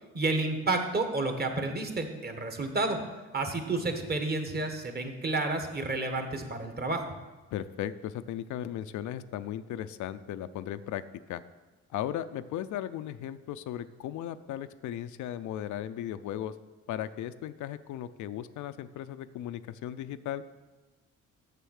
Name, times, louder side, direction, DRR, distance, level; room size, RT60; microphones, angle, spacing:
voice 1, 0.1-3.0 3.3-7.1, right 2 dB, 30° right, 6 dB, 1.3 m, -30 dB
voice 2, 7.5-11.0 11.3-11.4 11.9-16.5 16.9-20.4, left 11 dB, 75° left, 12 dB, 0.5 m, -36 dB
6.9 x 6.7 x 6.4 m, 1.2 s
cardioid pair, 90°, 30 cm